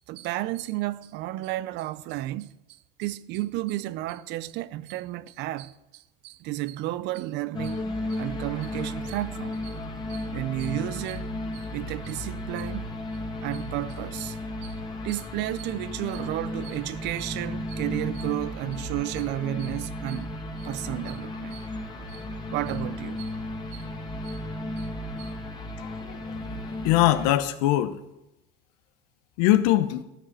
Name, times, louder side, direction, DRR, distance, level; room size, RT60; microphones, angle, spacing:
voice 1, 0.0-2.6 3.0-9.8 10.1-12.9 13.4-14.8 15.0-20.3 20.6-21.7 22.1-22.3 22.5-23.4 23.7-23.9 24.2-24.4 24.8-24.9 25.2-25.3, right 16 dB, 65° right, 0.6 m, -32 dB
sound 1, 7.5-27.3, left 1 dB, 20° left, 1.9 m, -34 dB
voice 2, 25.8-26.2 26.4-27.9 29.4-30.0, left 14 dB, 85° left, 0.9 m, -22 dB
14.0 x 6.5 x 7.9 m
supercardioid pair, 110°, 19 cm